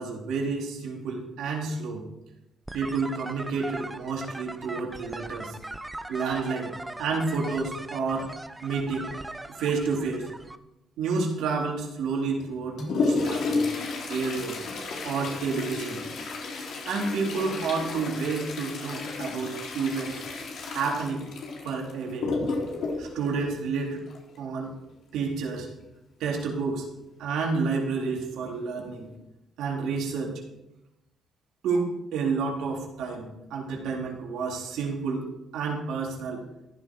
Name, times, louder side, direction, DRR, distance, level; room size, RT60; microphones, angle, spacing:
voice 1, 0.0-2.0 2.7-5.5 6.1-8.3 8.6-9.1 9.6-10.3 11.0-13.7 14.1-14.6 15.0-16.0 16.9-20.2 20.6-21.3 21.6-22.3 23.0-24.0 24.4-24.7 25.1-25.7 26.2-26.9 27.2-29.1 29.6-30.4 31.6-35.3 35.5-36.4, right 4 dB, 85° right, -1 dB, 3.6 m, -30 dB
sound 1, 2.7-10.6, right 2 dB, 15° right, 0.9 m, -40 dB
Toilet flush, 12.4-24.4 26.2-26.3 26.7-26.8 27.5-27.6 28.3-28.5 29.0-29.1, left 3 dB, 70° left, 3.9 m, -32 dB
14.5 x 11.5 x 4.7 m, 0.91 s
cardioid pair, 90°, 0 cm